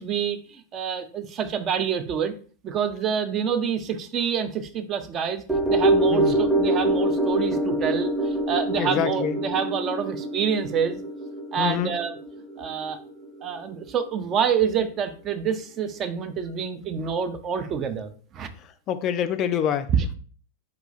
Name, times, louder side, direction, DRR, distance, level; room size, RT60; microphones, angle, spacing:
voice 1, 0.0-2.3 2.6-5.4 5.7-11.0 11.5-12.2 12.6-13.0 13.4-18.5 19.9-20.1, right 7 dB, 30° right, 9 dB, 0.4 m, -27 dB
sound 1, 5.5-13.9 14.2-14.3, right 1 dB, ahead, 0.7 m, -25 dB
voice 2, 8.8-9.3 11.6-11.9 18.6-19.9, left 9 dB, 35° left, 10 dB, 0.3 m, -26 dB
4.1 x 2.3 x 4.0 m, 0.42 s
figure-of-eight pair, 90°, 0 cm